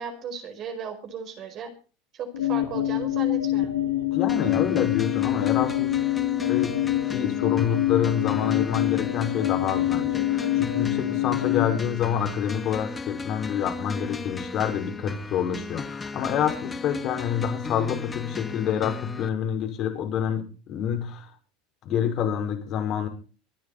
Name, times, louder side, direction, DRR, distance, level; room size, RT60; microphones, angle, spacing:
voice 1, 0.0-1.7 2.1-3.8, right 6 dB, 45° right, 5 dB, 5.0 m, -36 dB
sound 1, 2.3-11.8, left 14 dB, 90° left, 2.5 m, -25 dB
voice 2, 4.1-6.0 6.5-6.8 7.1-21.3 21.8-23.1, left 8 dB, 50° left, 5 dB, 5.5 m, -27 dB
sound 2, 4.3-19.3, left 3 dB, 20° left, 1.7 m, -36 dB
24.5 x 10.0 x 4.3 m, 0.37 s
hypercardioid pair, 95°, 0 cm